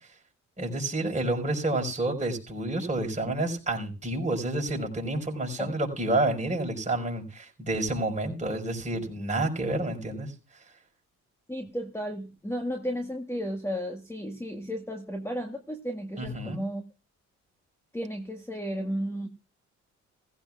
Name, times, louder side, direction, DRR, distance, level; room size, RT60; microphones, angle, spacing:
voice 1, 0.6-10.3 16.2-16.6, right 2 dB, 25° right, 1 dB, 5.4 m, -29 dB
voice 2, 11.5-16.8 17.9-19.3, equal, 10° left, 3 dB, 1.7 m, -33 dB
15.5 x 15.5 x 2.5 m, 0.31 s
cardioid pair, 90°, 30 cm